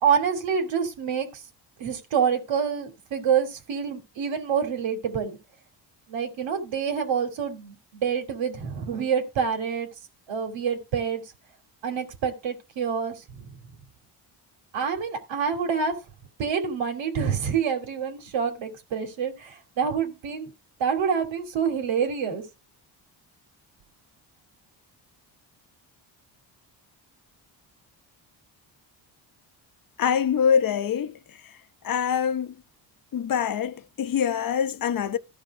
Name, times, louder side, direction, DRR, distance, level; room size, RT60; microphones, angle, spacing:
voice 1, 0.0-1.3 1.8-5.4 6.1-9.9 10.3-11.2 11.8-13.1 13.4-13.5 14.7-15.9 16.4-20.5 20.8-22.4, right 7 dB, 75° right, 2.9 m, -27 dB
voice 2, 30.0-31.1 31.8-32.5 33.1-35.2, left 8 dB, 45° left, 1.0 m, -24 dB
14.0 x 5.1 x 4.8 m
cardioid pair, 90°, 45 cm